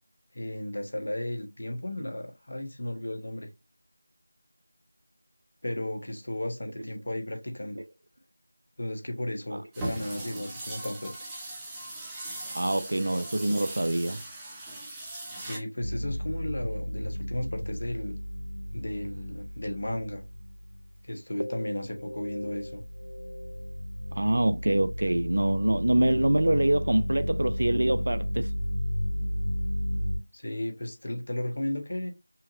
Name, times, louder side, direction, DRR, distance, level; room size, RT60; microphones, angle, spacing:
voice 1, 0.3-3.5 5.6-7.8 8.8-11.3 15.4-18.2 18.7-20.2 21.0-22.8 30.3-32.1, left 1 dB, 55° left, 1.2 m, -34 dB
sound 1, 9.7-15.6, right 1 dB, 5° right, 0.7 m, -39 dB
voice 2, 12.5-14.2 24.1-28.5, right 1 dB, 55° right, 0.4 m, -25 dB
sound 2, 15.8-21.0 21.4-30.2, equal, 80° left, 0.5 m, -33 dB
5.6 x 2.6 x 2.6 m
figure-of-eight pair, 170°, 0 cm